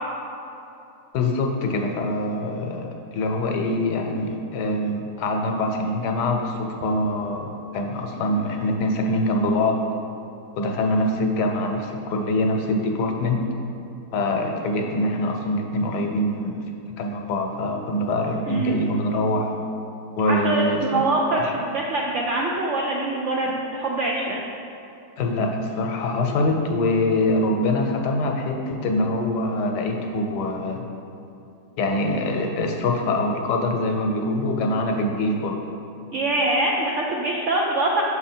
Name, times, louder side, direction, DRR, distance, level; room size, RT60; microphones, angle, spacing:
voice 1, 1.1-9.8 10.6-13.4 14.1-16.6 17.0-19.5 20.2-21.0 21.4-21.5 25.2-30.8 31.8-35.6, left 1 dB, 75° left, 2 dB, 1.3 m, -24 dB
voice 2, 20.3-24.4 36.1-38.0, right 2 dB, 70° right, -2 dB, 0.7 m, -24 dB
6.2 x 4.5 x 4.4 m, 2.8 s
omnidirectional pair, 1.8 m